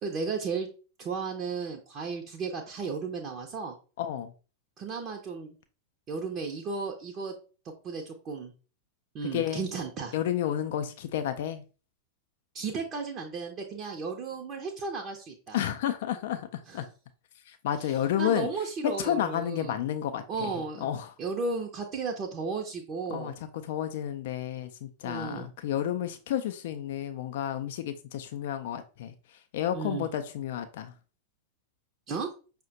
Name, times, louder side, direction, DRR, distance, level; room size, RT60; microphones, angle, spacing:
voice 1, 0.0-0.7 1.0-3.7 4.8-5.6 6.1-7.3 7.8-8.5 9.1-10.1 12.5-15.6 16.7-16.8 17.8-17.9 18.2-19.8 20.3-20.9 21.2-23.4 25.0-25.5 29.7-30.1 32.1-32.3, right 4 dB, 35° right, 0.6 m, -34 dB
voice 2, 4.0-4.3 9.3-9.7 10.1-11.6 15.5-16.9 17.5-18.5 18.8-20.5 20.8-21.1 23.1-29.1 29.5-30.9, left 10 dB, 55° left, 0.3 m, -31 dB
5.5 x 2.1 x 2.6 m
figure-of-eight pair, 90°, 0 cm